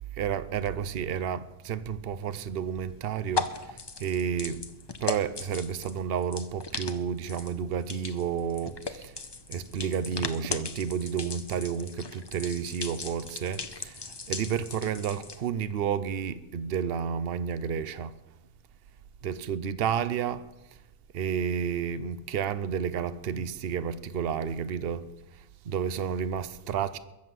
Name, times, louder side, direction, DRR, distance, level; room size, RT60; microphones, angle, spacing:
voice 1, 0.1-4.7 5.0-9.1 9.5-18.2 19.2-20.5 21.1-27.0, right 7 dB, 55° right, 0.9 m, -31 dB
sound 1, 2.2-15.5, left 4 dB, 25° left, 0.6 m, -38 dB
22.0 x 7.5 x 7.7 m
omnidirectional pair, 1.3 m